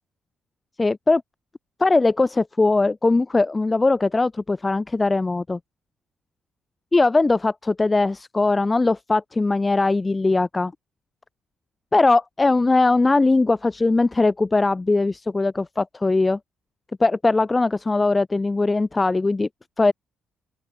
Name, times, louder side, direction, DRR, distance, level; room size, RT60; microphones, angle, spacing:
voice 1, 0.8-1.2 1.8-5.6 6.9-10.7 11.9-16.4 17.0-19.5 19.8-19.9, left 3 dB, 20° left, 0.8 m, -20 dB
open air
cardioid pair, 90°, 0 cm